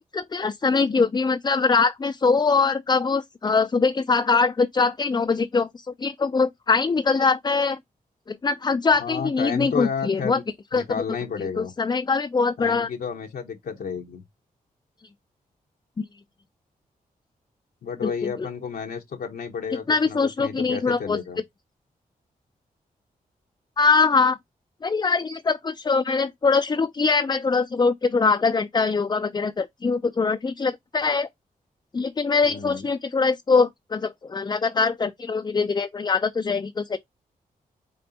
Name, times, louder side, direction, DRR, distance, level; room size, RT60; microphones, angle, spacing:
voice 1, 0.1-5.7 6.0-7.8 8.3-10.4 10.7-10.8 11.4-12.9 16.0-16.1 18.0-18.5 19.9-21.2 23.8-24.4 24.8-31.3 31.9-37.0, left 4 dB, 25° left, 0.4 m, -22 dB
voice 2, 9.0-10.4 10.7-11.7 12.6-14.2 17.8-21.4 32.4-32.8, left 6 dB, 75° left, 0.8 m, -31 dB
5.2 x 3.2 x 2.7 m
cardioid pair, 65°, 16 cm